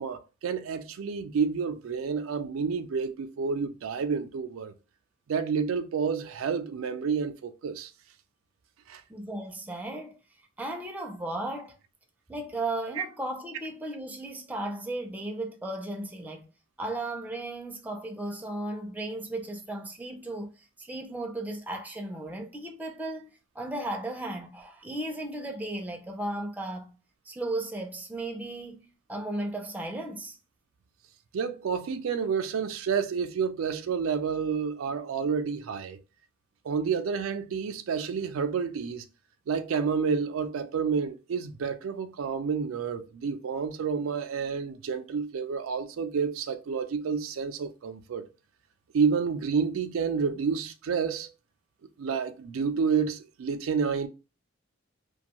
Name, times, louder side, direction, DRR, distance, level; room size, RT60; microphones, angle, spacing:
voice 1, 0.0-4.7 5.3-7.9 8.9-9.0 13.0-13.1 31.3-36.0 36.6-39.0 39.5-48.3 48.9-51.3 52.0-54.1, right 6 dB, 85° right, 0.4 m, -29 dB
voice 2, 9.1-10.2 10.6-11.8 12.3-16.5 16.8-20.5 20.8-23.3 23.6-26.9 27.3-30.4, right 1 dB, 10° right, 0.4 m, -35 dB
2.5 x 2.2 x 2.8 m
head